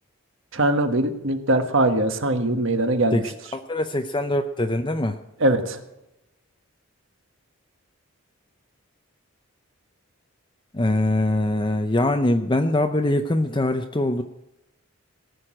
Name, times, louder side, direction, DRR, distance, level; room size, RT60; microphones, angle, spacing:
voice 1, 0.5-3.3 5.4-5.8, right 1 dB, 60° right, 7 dB, 1.4 m, -21 dB
voice 2, 3.5-5.2 10.7-14.2, left 1 dB, 20° left, 6 dB, 0.6 m, -23 dB
19.0 x 6.4 x 8.9 m, 0.91 s
head